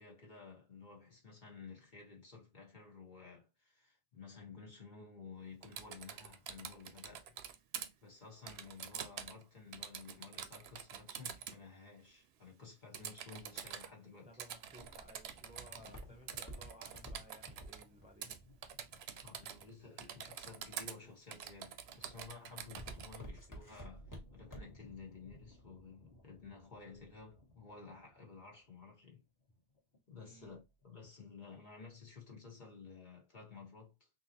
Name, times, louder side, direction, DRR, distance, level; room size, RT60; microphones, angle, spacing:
voice 1, 0.0-7.3 8.0-14.3 15.7-15.9 19.2-29.2 30.1-34.0, left 5 dB, 50° left, 1.4 m, -54 dB
Typing, 5.6-7.9 8.5-9.4 9.7-11.6 12.9-13.9 14.4-16.0 16.3-17.8 18.2-18.4 18.6-19.7 20.0-21.0 21.3-23.2, right 8 dB, 80° right, 0.8 m, -46 dB
voice 2, 14.2-18.4 30.2-30.6, equal, 5° right, 0.7 m, -59 dB
sound 1, 14.7-30.9, equal, 65° left, 1.5 m, -63 dB
Walk footsteps, 15.8-19.8 20.4-20.8 21.3-21.7 22.0-24.9 25.3-25.4, equal, 20° left, 1.1 m, -50 dB
3.9 x 2.9 x 2.8 m
omnidirectional pair, 1.1 m